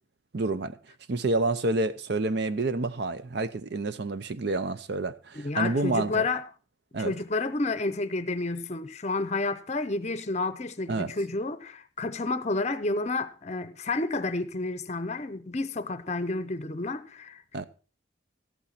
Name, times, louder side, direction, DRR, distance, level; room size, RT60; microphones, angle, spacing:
voice 1, 0.3-0.8 1.1-6.2 6.9-7.1 10.9-11.1 17.5-17.6, right 2 dB, 55° right, 0.6 m, -28 dB
voice 2, 5.4-6.4 7.0-17.4, left 3 dB, 35° left, 0.7 m, -30 dB
14.0 x 8.8 x 4.1 m
head